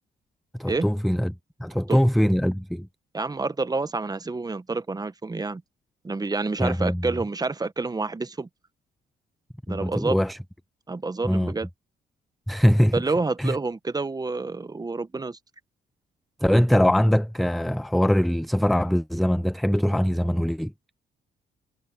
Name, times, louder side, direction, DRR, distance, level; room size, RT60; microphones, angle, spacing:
voice 1, 0.6-1.3 1.6-2.9 6.6-7.1 9.7-10.4 11.2-11.5 12.5-13.0 13.4-13.6 16.4-20.7, equal, ahead, 0.3 m, -22 dB
voice 2, 3.1-5.6 6.0-8.5 9.7-10.2 10.9-11.7 12.9-15.4, right 3 dB, 20° right, 1.0 m, -28 dB
cardioid pair, 90°, 20 cm